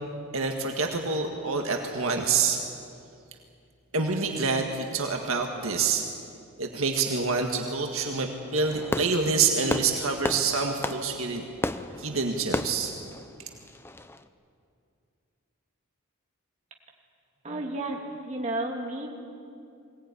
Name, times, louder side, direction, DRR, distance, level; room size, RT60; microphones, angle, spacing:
voice 1, 0.3-2.6 3.9-6.0 6.6-11.4 12.0-12.9, right 4 dB, 65° right, 3 dB, 1.8 m, -27 dB
Fireworks, 8.6-14.2, left 1 dB, 10° left, 0.6 m, -34 dB
voice 2, 17.4-19.2, right 1 dB, 30° right, 0 dB, 2.8 m, -32 dB
22.0 x 18.0 x 9.8 m, 2.5 s
head